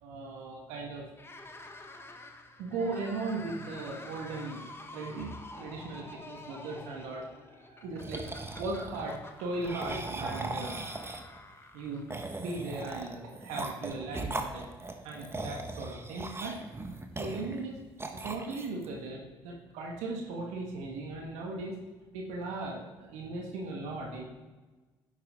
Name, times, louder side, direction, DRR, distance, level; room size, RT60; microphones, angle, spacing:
voice 1, 0.0-1.0 2.6-4.7 4.9-10.8 11.7-12.0 12.4-14.7 15.0-16.6 17.2-17.8 18.2-21.8 22.1-24.2, right 3 dB, 75° right, 0 dB, 1.6 m, -38 dB
sound 1, 1.1-12.4, left 2 dB, 20° left, 1.4 m, -49 dB
sound 2, 8.0-9.1 9.6-11.4 12.1-17.7 18.0-18.9, right 2 dB, 20° right, 1.5 m, -39 dB
11.0 x 8.3 x 3.7 m, 1.2 s
hypercardioid pair, 50°, 12 cm